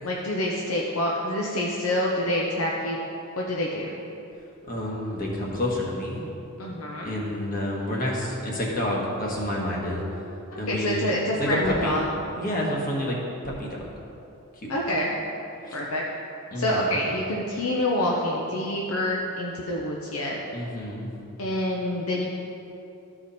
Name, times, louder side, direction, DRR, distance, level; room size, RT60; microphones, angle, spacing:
voice 1, 0.0-3.0 3.4-3.9 6.6-7.1 10.5-12.1 14.7-15.1 15.7-16.0 16.6-20.4 21.4-22.3, left 1 dB, 75° left, -3 dB, 0.8 m, -27 dB
voice 2, 4.7-6.2 7.0-10.0 10.6-11.1 11.4-11.9 12.3-13.2 13.4-13.8 14.6-14.7 15.7-15.8 16.5-16.9 20.5-21.1, left 1 dB, 40° left, -3 dB, 1.5 m, -29 dB
13.0 x 4.9 x 4.2 m, 2.9 s
head